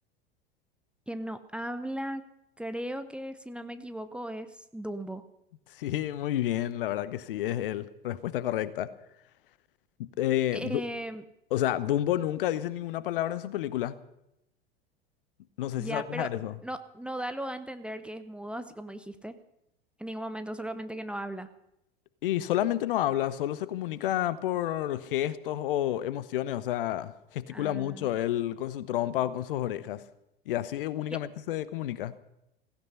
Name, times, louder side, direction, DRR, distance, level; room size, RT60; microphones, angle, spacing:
voice 1, 1.1-2.2 2.6-5.2 10.5-11.2 15.8-19.4 20.0-21.5 27.5-28.1 31.1-31.2, right 1 dB, 5° right, 0.7 m, -37 dB
voice 2, 5.7-8.9 10.0-10.8 11.5-13.9 15.6-16.5 22.2-30.0 30.5-32.1, left 12 dB, 60° left, 0.9 m, -30 dB
16.0 x 15.5 x 5.5 m
figure-of-eight pair, 80°, 31 cm